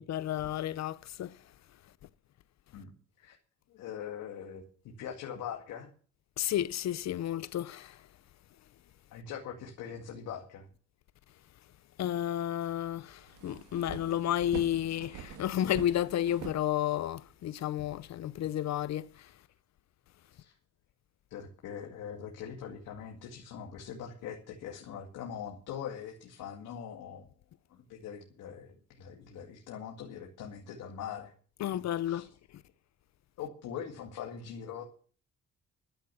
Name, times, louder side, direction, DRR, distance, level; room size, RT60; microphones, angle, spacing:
voice 1, 0.0-1.4 6.4-8.0 12.0-19.3 31.6-32.6, left 11 dB, 65° left, 0.7 m, -32 dB
voice 2, 3.7-4.6 5.0-5.9 9.1-10.7 20.3-20.5 21.3-27.3 27.7-31.3 31.7-32.3 33.4-34.8, left 8 dB, 85° left, 2.2 m, -42 dB
sound 1, 12.7-12.8 13.1-17.3, right 8 dB, 85° right, 1.9 m, -45 dB
13.0 x 10.5 x 7.1 m
cardioid pair, 90°, 30 cm